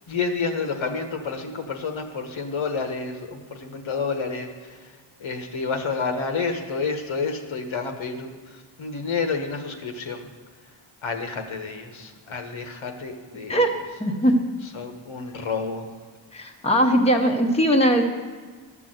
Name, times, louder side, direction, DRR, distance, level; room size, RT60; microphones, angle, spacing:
voice 1, 0.1-4.9 5.2-10.3 11.0-13.6 14.7-15.9, left 4 dB, 85° left, 5 dB, 1.4 m, -29 dB
voice 2, 13.5-14.4 16.3-18.0, equal, 15° left, 2 dB, 0.9 m, -20 dB
13.0 x 6.2 x 7.7 m, 1.5 s
wide cardioid pair, 160°, 47 cm